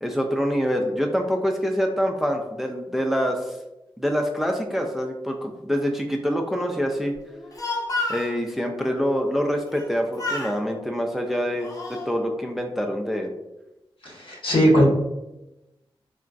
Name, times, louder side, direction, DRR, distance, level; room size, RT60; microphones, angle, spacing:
voice 1, 0.0-3.6 4.0-7.1 8.1-13.3, equal, 5° right, 2 dB, 0.3 m, -25 dB
Speech, 7.3-8.3 9.7-9.9 10.2-10.6 11.3-12.1, left 2 dB, 35° left, 0.7 m, -30 dB
voice 2, 14.0-14.8, equal, 65° left, -3 dB, 1.0 m, -19 dB
3.8 x 2.2 x 2.4 m, 0.96 s
wide cardioid pair, 75°, 10 cm